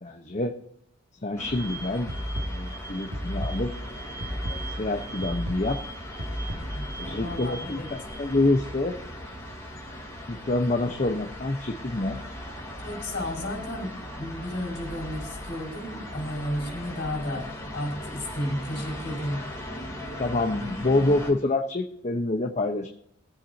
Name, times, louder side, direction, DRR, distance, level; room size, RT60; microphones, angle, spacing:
voice 1, 0.0-0.6 1.2-2.1 2.5-3.7 4.8-5.8 7.0-9.0 10.3-12.2 20.2-22.9, left 2 dB, 35° left, 3 dB, 1.0 m, -27 dB
sound 1, 1.4-21.3, equal, 15° left, 5.1 m, -38 dB
sound 2, 2.1-7.1, equal, 75° right, 2.1 m, -34 dB
voice 2, 6.5-6.9 7.2-7.9 12.8-19.5, left 1 dB, 50° left, -1 dB, 5.9 m, -33 dB
23.0 x 8.4 x 2.8 m, 0.68 s
head